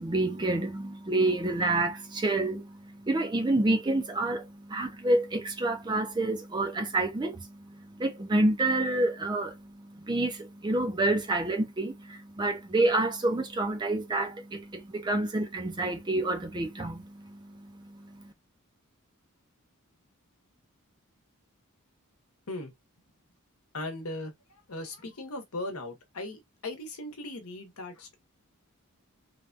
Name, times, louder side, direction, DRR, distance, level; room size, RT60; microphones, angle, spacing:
voice 1, 0.0-18.3, right 2 dB, 20° right, 0.4 m, -28 dB
voice 2, 23.7-28.2, left 2 dB, 80° left, 0.9 m, -38 dB
3.3 x 2.2 x 2.4 m
head